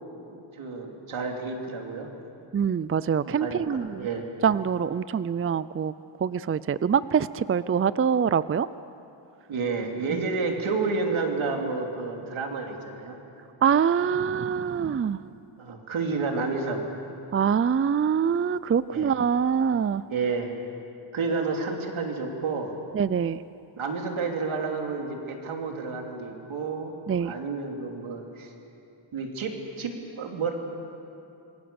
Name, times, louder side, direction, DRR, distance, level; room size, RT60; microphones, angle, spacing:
voice 1, 0.3-2.1 3.4-4.3 9.5-13.2 15.6-16.9 18.9-19.1 20.1-20.6 21.1-22.7 23.8-28.5 29.1-30.5, right 4 dB, 80° right, 2 dB, 3.2 m, -30 dB
voice 2, 2.5-4.1 4.4-5.9 6.2-8.7 10.1-10.3 13.6-15.2 17.3-20.0 22.9-23.4 27.1-27.3, right 7 dB, 30° right, 16 dB, 0.5 m, -24 dB
27.0 x 23.0 x 7.1 m, 2.7 s
cardioid pair, 90°, 48 cm